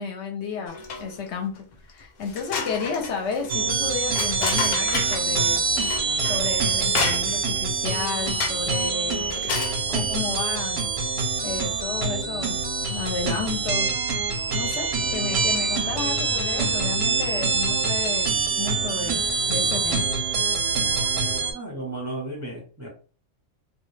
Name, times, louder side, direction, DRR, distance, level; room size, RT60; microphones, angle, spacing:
voice 1, 0.0-5.6 6.2-9.5 9.9-10.8 11.1-12.6 12.9-13.9 14.5-19.2 19.5-20.1, left 5 dB, 65° left, 3 dB, 0.8 m, -32 dB
sound 1, 0.7-1.3 1.7-1.8 2.2-5.3 5.8-7.6 8.4-8.8 9.2-9.8, left 4 dB, 85° left, 0.4 m, -31 dB
sound 2, 3.5-21.5, right 4 dB, 65° right, 0.7 m, -25 dB
voice 2, 21.5-22.9, right 2 dB, 20° right, -1 dB, 0.5 m, -34 dB
2.2 x 2.2 x 3.1 m, 0.38 s
omnidirectional pair, 1.4 m